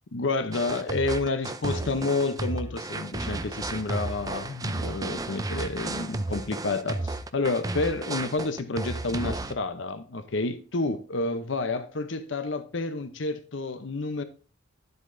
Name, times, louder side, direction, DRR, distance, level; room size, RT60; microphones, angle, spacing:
voice 1, 0.1-14.2, left 3 dB, 70° left, 0.8 m, -29 dB
sound 1, 0.5-9.5, right 2 dB, 20° right, 0.4 m, -33 dB
11.0 x 7.9 x 2.6 m
head